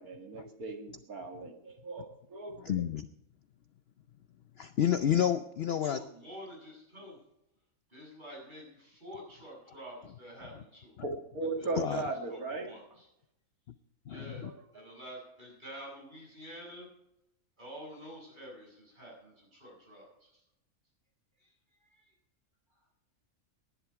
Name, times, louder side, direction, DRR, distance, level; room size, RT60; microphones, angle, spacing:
voice 1, 0.0-2.9 11.0-13.0 14.1-14.9, right 3 dB, 85° right, 2 dB, 2.7 m, -38 dB
voice 2, 2.6-3.1 4.6-6.0 11.8-12.0 14.1-14.5, left 9 dB, 60° left, 12 dB, 0.7 m, -29 dB
voice 3, 5.8-7.2 7.9-11.0 11.8-12.1 12.6-12.8 14.1-14.5 14.7-16.9 17.6-20.3 21.9-22.0, equal, 30° right, -2 dB, 7.7 m, -48 dB
17.5 x 11.5 x 4.8 m, 0.80 s
omnidirectional pair, 1.5 m